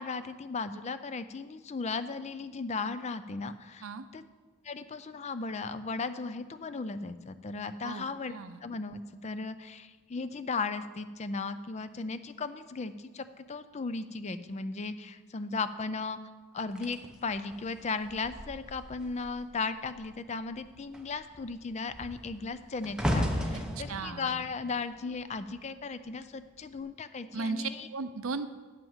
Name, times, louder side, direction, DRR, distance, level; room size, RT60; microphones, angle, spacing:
voice 1, 0.0-3.8 4.1-4.2 4.6-8.3 8.6-16.2 16.5-27.9, left 4 dB, 30° left, 12 dB, 0.4 m, -36 dB
voice 2, 7.8-8.6 23.5-23.6 23.9-24.4 27.3-28.5, right 4 dB, 65° right, 11 dB, 0.6 m, -36 dB
sound 1, 16.8-19.5 19.8-20.1 20.5-25.8 26.5-26.8, equal, 5° right, 0.8 m, -36 dB
9.1 x 5.9 x 7.2 m, 1.3 s
head